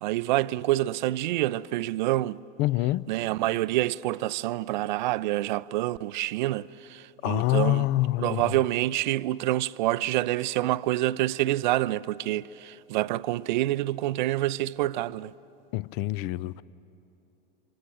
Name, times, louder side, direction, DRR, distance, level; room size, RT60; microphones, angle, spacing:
voice 1, 0.0-2.4 3.1-7.9 8.2-15.3, right 16 dB, 50° right, 0.5 m, -27 dB
voice 2, 2.6-3.1 7.2-8.4 15.7-16.6, left 17 dB, 35° left, 0.5 m, -26 dB
27.0 x 26.0 x 6.4 m
figure-of-eight pair, 85°, 29 cm